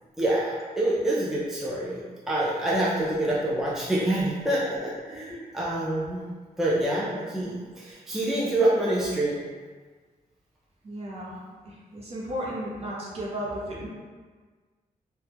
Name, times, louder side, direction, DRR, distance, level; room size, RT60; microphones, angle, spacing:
voice 1, 0.2-6.2 6.6-9.4, right 1 dB, 5° right, -7 dB, 0.4 m, -26 dB
voice 2, 5.1-5.4 10.8-13.9, equal, 40° right, -5 dB, 0.7 m, -35 dB
3.5 x 2.1 x 2.8 m, 1.5 s
wide cardioid pair, 165°, 15 cm